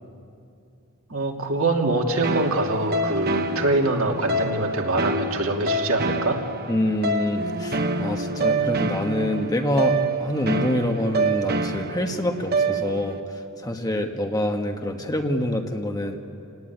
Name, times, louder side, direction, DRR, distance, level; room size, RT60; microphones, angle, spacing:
voice 1, 1.1-6.4, right 2 dB, 65° right, 1 dB, 2.8 m, -24 dB
sound 1, 2.2-13.2, right 2 dB, 45° right, 1.2 m, -26 dB
voice 2, 6.7-13.2 13.6-16.2, left 1 dB, 15° left, 4 dB, 1.5 m, -26 dB
29.0 x 19.0 x 9.4 m, 2.6 s
head